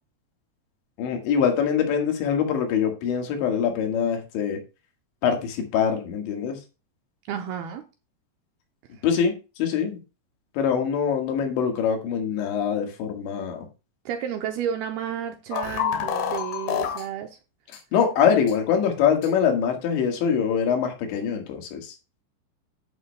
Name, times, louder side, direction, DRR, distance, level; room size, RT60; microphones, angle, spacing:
voice 1, 1.0-4.6 5.2-6.6 9.0-9.3 9.6-10.0 10.6-13.7 17.9-21.9, left 7 dB, 85° left, 4.0 m, -23 dB
voice 2, 7.3-7.8 14.1-17.4, right 9 dB, 85° right, 2.3 m, -31 dB
sound 1, 15.5-17.0 17.7-17.8 18.5-18.6 19.2-19.3, left 8 dB, 70° left, 3.4 m, -27 dB
11.5 x 10.0 x 2.3 m
omnidirectional pair, 5.1 m